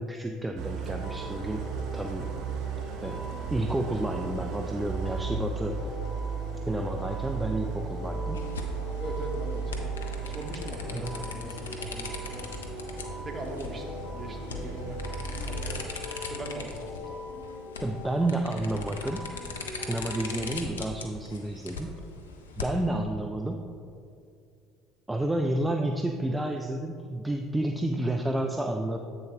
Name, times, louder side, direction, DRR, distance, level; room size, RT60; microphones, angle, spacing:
voice 1, 0.0-1.6 1.9-2.3 3.0-3.2 3.5-5.9 6.7-8.4 10.9-11.2 17.8-19.3 19.9-21.9 22.6-23.6 25.1-29.0, right 1 dB, 10° right, 4 dB, 0.4 m, -30 dB
Idling, 0.6-15.8, right 6 dB, 60° right, 0.6 m, -35 dB
sound 1, 0.9-20.7, left 2 dB, 65° left, 1.0 m, -43 dB
sound 2, 8.3-22.9, left 4 dB, 80° left, 0.5 m, -40 dB
voice 2, 9.0-10.0 10.2-12.7 13.2-13.8 14.1-17.2, right 1 dB, 30° right, 1 dB, 1.2 m, -40 dB
8.0 x 6.8 x 2.7 m, 2.4 s
figure-of-eight pair, 60°, 0 cm